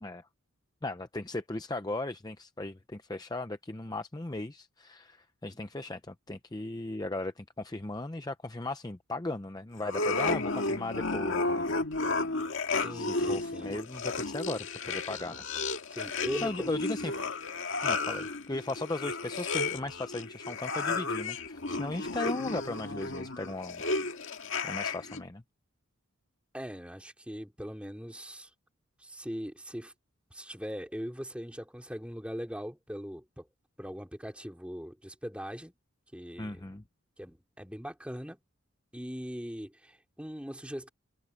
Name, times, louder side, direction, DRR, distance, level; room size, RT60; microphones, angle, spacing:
voice 1, 0.8-11.8 12.9-15.4 16.4-17.1 17.8-23.8 24.6-25.4 36.4-36.8, left 2 dB, 20° left, 0.6 m, -37 dB
sound 1, 9.8-25.2, left 3 dB, 60° left, 2.0 m, -33 dB
voice 2, 12.8-13.7 15.9-16.7 26.5-28.5 29.0-29.9 30.3-33.5 33.8-35.7 36.1-36.7 37.2-38.4 38.9-40.9, equal, 5° right, 3.1 m, -40 dB
head